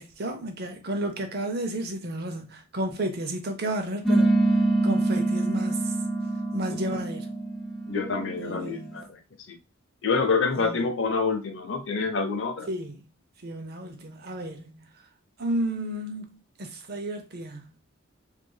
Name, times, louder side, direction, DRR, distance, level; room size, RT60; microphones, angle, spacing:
voice 1, 0.0-4.3 4.8-5.8 6.5-7.3 8.4-8.9 10.6-10.8 12.7-13.0 13.4-14.8 15.4-17.6, right 1 dB, 55° right, 0.7 m, -32 dB
sound 1, 4.0-9.0, right 2 dB, ahead, 0.6 m, -25 dB
voice 2, 7.9-9.2 9.5-9.6 10.0-12.7, left 4 dB, 70° left, 0.7 m, -27 dB
3.4 x 3.2 x 2.2 m
head